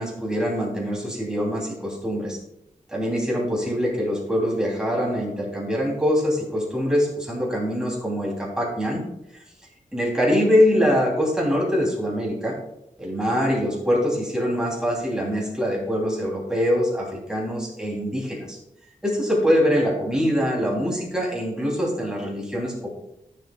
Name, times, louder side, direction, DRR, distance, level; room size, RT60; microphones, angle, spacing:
voice 1, 0.0-2.4 2.9-9.0 9.9-12.5 13.0-18.6 19.0-22.9, equal, 5° right, -3 dB, 3.1 m, -23 dB
14.0 x 7.4 x 2.4 m, 0.84 s
wide cardioid pair, 130°, 14 cm